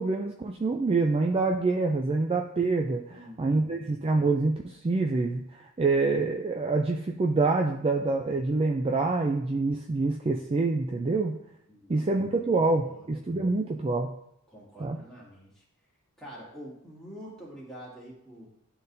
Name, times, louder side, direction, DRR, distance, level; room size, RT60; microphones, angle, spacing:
voice 1, 0.0-11.3 11.9-14.1 14.8-15.0, right 3 dB, 25° right, 2 dB, 0.4 m, -26 dB
voice 2, 3.1-3.8 11.7-12.1 12.6-13.1 14.5-15.6 16.2-18.5, equal, ahead, -7 dB, 2.2 m, -47 dB
11.5 x 3.9 x 2.7 m, 0.75 s
head